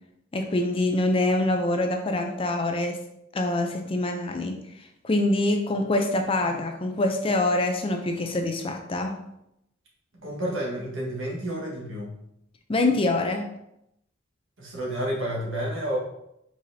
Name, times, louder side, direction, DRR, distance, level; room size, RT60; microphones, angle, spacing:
voice 1, 0.3-3.0 3.3-4.6 5.0-9.2 12.7-13.5, left 2 dB, 25° left, 5 dB, 0.4 m, -25 dB
voice 2, 10.2-12.1 14.6-16.0, right 1 dB, 80° right, -3 dB, 1.5 m, -30 dB
4.7 x 4.1 x 2.7 m, 0.80 s
head